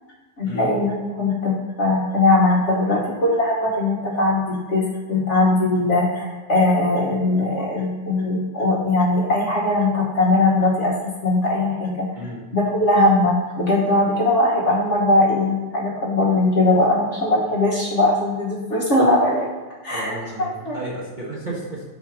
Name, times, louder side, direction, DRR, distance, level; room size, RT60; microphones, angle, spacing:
voice 1, 0.4-10.9 11.2-12.1 12.5-19.5 19.8-20.8, left 2 dB, 45° left, -5 dB, 1.4 m, -20 dB
voice 2, 19.9-21.8, right 1 dB, 30° right, -7 dB, 1.3 m, -32 dB
4.8 x 4.4 x 5.9 m, 1.3 s
omnidirectional pair, 1.9 m